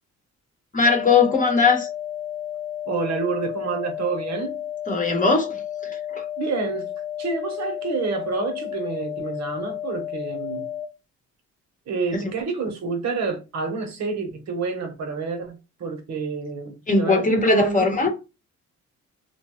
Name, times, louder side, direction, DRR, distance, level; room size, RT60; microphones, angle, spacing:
voice 1, 0.7-1.9 4.9-5.6 6.1-6.2 12.1-12.2 16.9-18.1, left 4 dB, 25° left, 0.9 m, -19 dB
sound 1, 0.8-10.8, left 11 dB, 5° right, 0.6 m, -32 dB
voice 2, 2.9-4.6 6.4-6.9 7.2-10.7 11.9-18.1, right 4 dB, 60° right, 0.9 m, -29 dB
2.8 x 2.2 x 2.9 m
cardioid pair, 90°, 30 cm